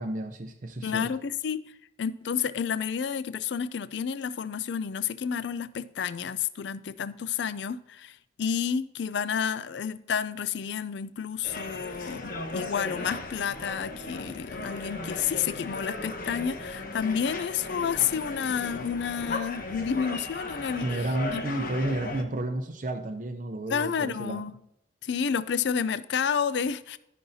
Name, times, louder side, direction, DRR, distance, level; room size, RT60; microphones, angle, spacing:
voice 1, 0.0-1.1 20.8-24.5, right 1 dB, 45° right, 0.6 m, -32 dB
voice 2, 0.8-1.6 2.0-20.9 21.3-21.4 23.7-24.5 25.0-27.0, left 7 dB, 65° left, 0.4 m, -30 dB
sound 1, 11.4-22.2, left 2 dB, 50° left, 1.1 m, -37 dB
14.0 x 5.6 x 2.8 m
head